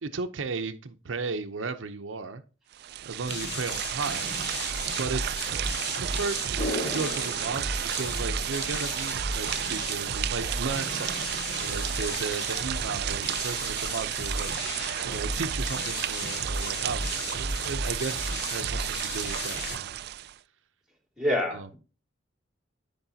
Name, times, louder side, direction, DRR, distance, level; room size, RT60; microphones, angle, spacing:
voice 1, 0.0-2.4 3.0-4.3 4.9-5.6 6.0-20.0 21.5-21.7, right 4 dB, 80° right, 8 dB, 0.7 m, -35 dB
sound 1, 2.7-20.4, right 12 dB, 55° right, 0.3 m, -32 dB
sound 2, 3.3-19.8, left 2 dB, 60° left, 1.9 m, -35 dB
sound 3, 6.6-9.0 9.3-9.4, left 1 dB, 35° left, 3.4 m, -36 dB
voice 2, 21.2-21.7, left 1 dB, 5° right, 1 dB, 2.3 m, -27 dB
12.5 x 5.3 x 2.8 m, 0.34 s
head